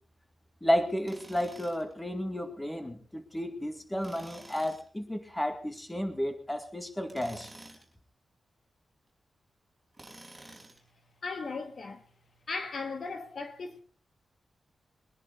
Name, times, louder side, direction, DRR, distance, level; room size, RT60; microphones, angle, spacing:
voice 1, 0.6-7.5, equal, 10° left, 2.2 m, -32 dB
Tools, 1.1-1.9 4.0-4.9 7.0-7.9 9.9-10.9, right 1 dB, 10° right, 4.5 m, -50 dB
voice 2, 11.2-12.0 12.5-13.8, left 4 dB, 55° left, 1.7 m, -37 dB
22.5 x 10.5 x 4.1 m
wide cardioid pair, 120°, 0 cm